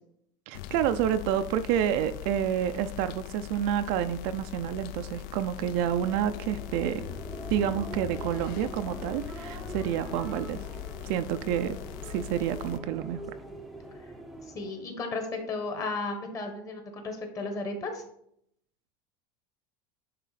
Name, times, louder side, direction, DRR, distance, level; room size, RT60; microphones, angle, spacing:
sound 1, 0.5-12.8, left 15 dB, 60° left, 0.5 m, -41 dB
voice 1, 0.5-7.1 7.5-10.6 11.0-11.8 12.1-13.2, right 10 dB, 55° right, 10 dB, 0.4 m, -29 dB
sound 2, 5.6-14.9, right 1 dB, ahead, 0.6 m, -43 dB
voice 2, 14.5-18.0, left 3 dB, 25° left, 5 dB, 1.3 m, -34 dB
9.5 x 3.7 x 4.1 m, 0.70 s
supercardioid pair, 160°, 13 cm